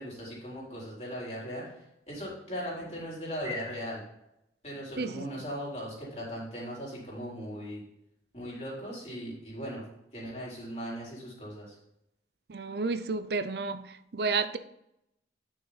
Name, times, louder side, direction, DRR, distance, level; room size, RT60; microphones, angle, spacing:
voice 1, 0.0-1.6 2.1-4.0 4.6-7.8 8.3-9.8 10.1-11.8, equal, 35° left, -5 dB, 4.0 m, -38 dB
voice 2, 12.5-13.9 14.1-14.6, right 4 dB, 65° right, 11 dB, 0.5 m, -31 dB
10.0 x 6.4 x 4.0 m, 0.82 s
head